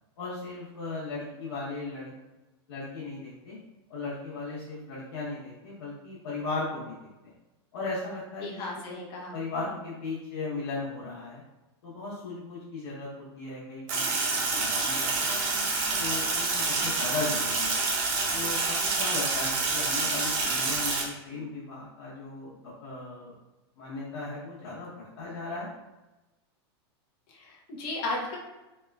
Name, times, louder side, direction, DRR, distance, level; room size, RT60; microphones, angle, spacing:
voice 1, 0.2-2.1 2.7-3.6 3.9-7.3 7.7-9.0 9.3-11.4 11.8-15.5 16.0-17.8 18.3-23.3 23.8-25.7, left 3 dB, 80° left, -8 dB, 0.8 m, -37 dB
voice 2, 8.4-9.4 27.3-28.4, left 2 dB, 35° left, -2 dB, 0.6 m, -35 dB
Sink (filling or washing), 13.9-21.0, right 3 dB, 45° right, 0.6 m, -27 dB
2.9 x 2.2 x 2.2 m, 1.0 s
supercardioid pair, 155°, 14 cm